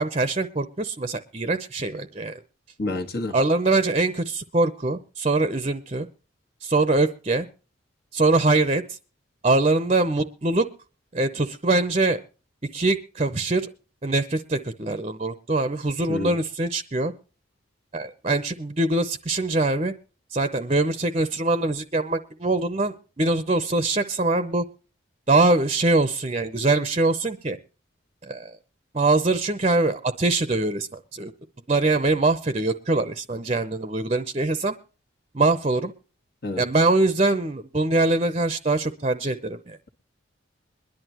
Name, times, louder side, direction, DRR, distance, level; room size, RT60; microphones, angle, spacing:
voice 1, 0.0-2.4 3.3-6.1 6.6-7.5 8.1-9.0 9.4-10.7 11.1-12.2 12.7-13.7 14.0-17.1 17.9-19.9 20.3-24.6 25.3-27.6 28.2-28.5 28.9-31.3 31.7-34.8 35.3-35.9 36.6-39.8, right 2 dB, 30° right, 0.7 m, -23 dB
voice 2, 2.8-3.3 16.1-16.3 36.4-36.6, left 2 dB, 50° left, 1.5 m, -28 dB
22.5 x 11.0 x 3.0 m
head